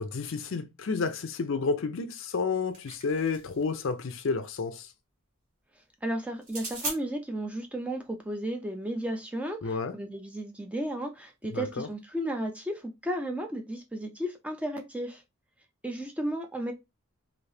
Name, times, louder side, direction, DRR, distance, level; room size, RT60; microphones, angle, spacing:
voice 1, 0.0-4.9 9.6-9.9 11.5-11.9, left 4 dB, 60° left, 0.5 m, -31 dB
sound 1, 2.4-3.7 6.4-7.0, right 2 dB, 40° right, 1.3 m, -38 dB
voice 2, 6.0-15.2 15.8-16.7, right 1 dB, 5° right, 0.4 m, -34 dB
3.3 x 2.7 x 2.7 m
head